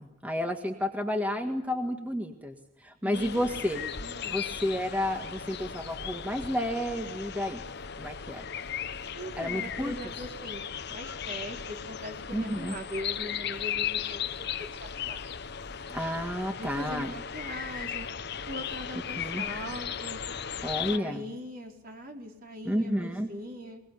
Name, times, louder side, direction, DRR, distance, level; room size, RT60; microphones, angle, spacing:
voice 1, 0.0-2.5 2.8-3.8 4.3-7.6 8.0-8.5 9.4-10.0 12.3-12.7 15.9-17.1 19.2-19.4 20.6-21.2 22.6-23.3, left 1 dB, 10° right, 5 dB, 1.7 m, -31 dB
voice 2, 3.0-4.4 9.1-10.6 10.9-15.2 16.5-18.1 18.5-20.2 20.9-23.8, equal, 50° right, 2 dB, 4.5 m, -41 dB
sound 1, 3.1-21.0, left 8 dB, 60° left, 1.1 m, -36 dB
22.5 x 21.5 x 9.7 m, 0.86 s
head